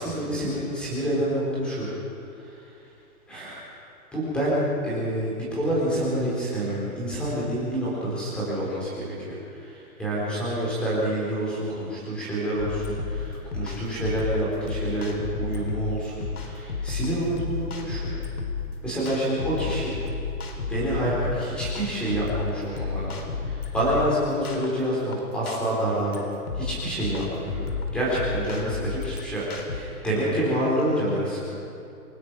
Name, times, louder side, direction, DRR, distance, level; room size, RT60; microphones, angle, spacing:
voice 1, 0.0-1.9 2.4-2.6 3.3-3.7 4.1-18.1 18.8-19.9 20.7-26.3 26.5-27.6 27.9-31.5, right 1 dB, ahead, -7 dB, 3.8 m, -27 dB
sound 1, 12.6-29.8, left 5 dB, 80° left, 4.0 m, -32 dB
27.5 x 19.5 x 5.9 m, 2.6 s
hypercardioid pair, 180°, 44 cm